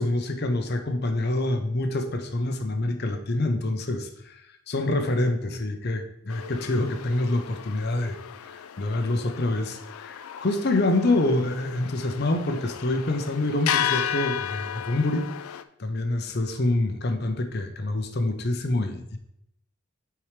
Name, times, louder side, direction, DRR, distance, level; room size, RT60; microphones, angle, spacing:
voice 1, 0.0-4.4 4.7-15.2 15.8-19.2, left 2 dB, 50° left, 7 dB, 0.7 m, -26 dB
sound 1, 6.3-15.6, left 9 dB, 90° left, 0.4 m, -34 dB
8.8 x 4.6 x 3.3 m, 0.77 s
head